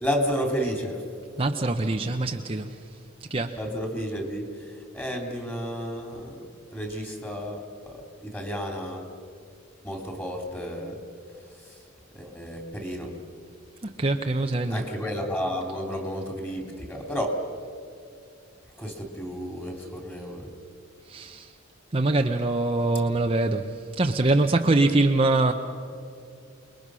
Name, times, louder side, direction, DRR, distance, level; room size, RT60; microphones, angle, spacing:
voice 1, 0.0-1.0 3.5-6.4 6.7-9.1 9.8-11.0 11.6-11.8 12.1-13.2 14.7-17.4 18.8-20.5, equal, 10° left, 3.1 m, -31 dB
voice 2, 1.4-2.7 3.3-3.6 14.0-14.8 21.1-21.5 21.9-25.5, right 2 dB, 30° right, 0.8 m, -23 dB
28.5 x 21.0 x 6.3 m
head